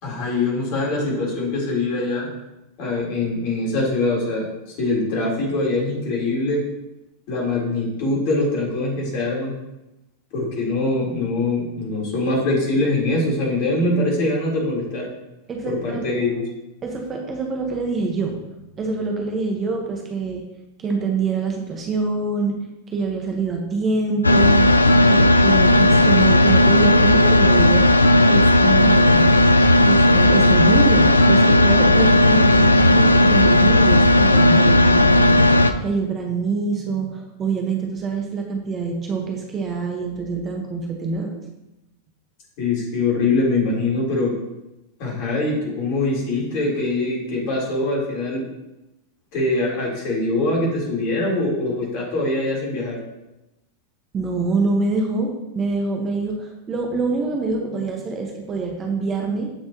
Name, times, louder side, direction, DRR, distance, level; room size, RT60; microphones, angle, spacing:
voice 1, 0.0-2.3 2.8-6.6 7.3-9.5 10.3-15.1 15.6-16.4 42.6-44.3 45.0-48.4 49.3-53.0, left 2 dB, 45° left, -3 dB, 4.1 m, -23 dB
voice 2, 15.5-16.2 16.8-18.4 18.8-20.5 20.8-22.6 22.9-27.9 28.3-29.3 29.8-41.3 54.1-59.5, right 4 dB, 25° right, 1 dB, 1.5 m, -25 dB
sound 1, 24.2-35.7, left 1 dB, 80° left, 0.5 m, -14 dB
15.5 x 6.3 x 3.1 m, 0.93 s
figure-of-eight pair, 90°, 0 cm